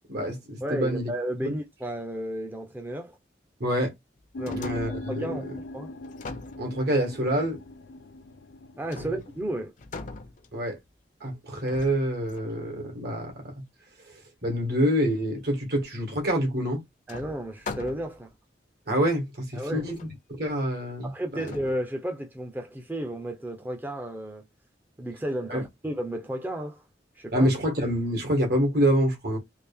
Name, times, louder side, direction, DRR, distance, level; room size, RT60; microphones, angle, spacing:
voice 1, 0.1-1.1 1.4-1.5 3.6-3.9 4.4-5.6 6.6-7.6 9.0-9.1 10.5-10.8 11.2-13.5 14.4-16.8 18.9-21.6 25.5-25.6 27.3-29.4, equal, 65° right, 1.7 m, -27 dB
voice 2, 0.6-3.2 4.4-5.9 8.8-9.7 17.1-18.3 19.5-19.9 21.0-24.4 25.0-26.8 27.2-27.5, right 1 dB, 10° right, 0.6 m, -33 dB
sound 1, 4.2-5.2 6.0-7.2 8.9-9.4 9.8-10.9 11.7-12.6 16.1-16.2 17.1-18.3 19.0-19.1 19.5-20.1 21.5-21.7, left 3 dB, 45° left, 0.6 m, -41 dB
sound 2, 4.3-9.7, left 1 dB, 90° left, 0.5 m, -40 dB
3.4 x 2.5 x 3.4 m
head